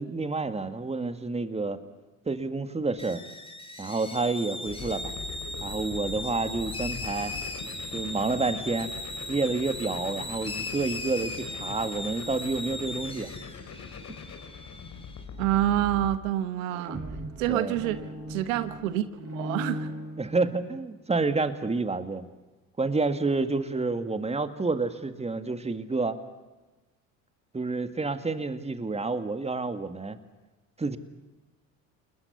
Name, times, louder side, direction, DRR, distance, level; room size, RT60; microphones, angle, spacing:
voice 1, 0.0-1.8 2.3-3.2 3.8-5.0 5.6-7.3 7.9-8.9 9.3-13.3 17.5-17.8 20.2-22.2 22.8-26.2 27.5-30.2 30.8-31.0, right 3 dB, 15° right, 9 dB, 2.0 m, -29 dB
sound 1, 3.0-15.2, left 2 dB, 15° left, 3.4 m, -38 dB
sound 2, 4.6-16.2, left 5 dB, 45° left, 3.4 m, -42 dB
voice 2, 15.4-17.0 17.4-18.0 18.3-19.0 19.3-19.9, right 13 dB, 85° right, 13 dB, 1.1 m, -27 dB
sound 3, 16.6-20.8, right 1 dB, 35° right, 7.2 m, -38 dB
29.0 x 20.0 x 7.0 m, 1.1 s
hypercardioid pair, 70°, 39 cm